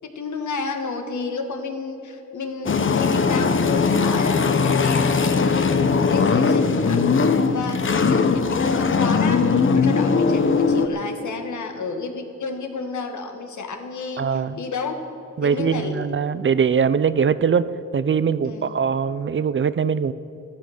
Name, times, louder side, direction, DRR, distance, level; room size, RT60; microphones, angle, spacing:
voice 1, 0.0-15.0 15.4-16.1 18.4-18.7, left 4 dB, 80° left, 6 dB, 1.6 m, -31 dB
sound 1, 2.7-10.9, left 5 dB, 45° left, 0.8 m, -19 dB
voice 2, 14.2-14.6 15.4-17.7 17.9-20.1, right 6 dB, 45° right, 15 dB, 0.5 m, -21 dB
13.5 x 13.0 x 6.5 m, 2.9 s
wide cardioid pair, 120°, 29 cm